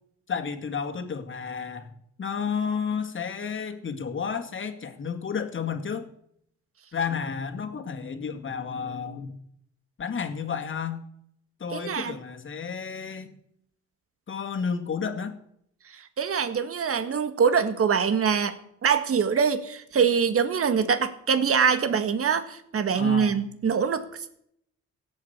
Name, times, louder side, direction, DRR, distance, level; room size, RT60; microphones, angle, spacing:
voice 1, 0.3-1.9 2.2-6.1 6.9-9.4 10.0-11.0 11.6-13.3 14.3-15.3 22.9-23.4, left 6 dB, 40° left, 7 dB, 2.3 m, -31 dB
voice 2, 11.7-12.2 15.9-24.4, right 6 dB, 50° right, 10 dB, 1.8 m, -24 dB
17.0 x 8.7 x 8.2 m, 0.71 s
cardioid pair, 90°, 30 cm